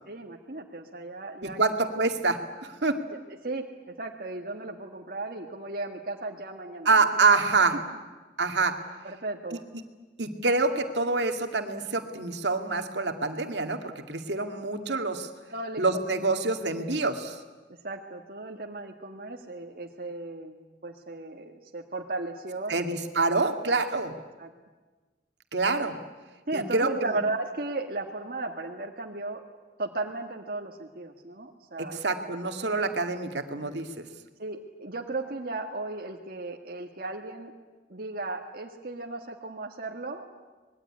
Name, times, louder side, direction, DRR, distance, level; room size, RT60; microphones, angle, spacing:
voice 1, 0.1-1.6 3.1-6.9 7.7-7.8 9.0-9.6 15.5-16.1 17.8-20.6 20.8-23.0 24.4-24.5 26.5-29.4 29.8-32.0 34.4-37.5 37.9-40.2, right 2 dB, 55° right, 1 dB, 1.8 m, -35 dB
voice 2, 1.6-3.0 6.9-7.8 8.4-8.8 10.2-15.3 15.8-17.4 22.7-24.2 25.5-26.0 26.5-27.1 31.8-34.0, right 3 dB, 75° right, 6 dB, 2.2 m, -26 dB
25.5 x 21.0 x 9.8 m, 1.3 s
head